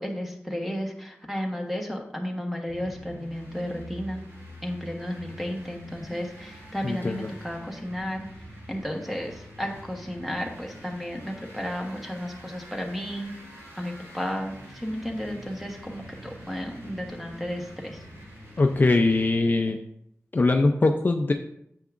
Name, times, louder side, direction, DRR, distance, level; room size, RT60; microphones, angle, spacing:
voice 1, 0.0-4.2 4.6-8.3 8.7-13.3 13.8-18.0, equal, ahead, 1 dB, 1.2 m, -33 dB
sound 1, 2.7-19.4, equal, 75° right, 3.3 m, -45 dB
voice 2, 6.8-7.3 18.6-19.8 20.3-21.3, left 2 dB, 40° left, 4 dB, 0.5 m, -22 dB
9.4 x 6.9 x 2.5 m, 0.75 s
wide cardioid pair, 115°, 5 cm